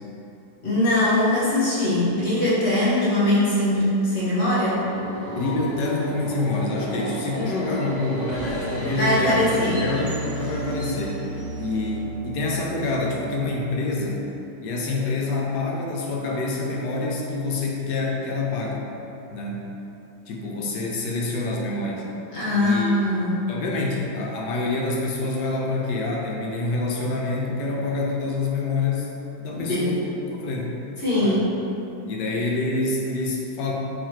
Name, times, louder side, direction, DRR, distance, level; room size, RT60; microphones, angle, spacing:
voice 1, 0.6-4.8 8.9-9.8 22.3-23.4 29.5-29.9 31.0-31.4, left 1 dB, 45° left, -9 dB, 1.0 m, -21 dB
Subway metro underground, 4.3-12.1, equal, 70° right, 0.4 m, -34 dB
voice 2, 5.4-9.5 9.8-11.2 11.6-14.2 14.6-18.8 19.3-19.7 20.3-22.0 22.5-23.0 23.5-30.1 30.4-30.7 31.2-31.5 32.1-33.7, left 2 dB, 80° left, -2 dB, 1.2 m, -27 dB
sound 1, 8.3-14.2 16.7-16.8, right 3 dB, 90° right, 1.3 m, -36 dB
3.1 x 2.5 x 4.3 m, 2.8 s
omnidirectional pair, 1.9 m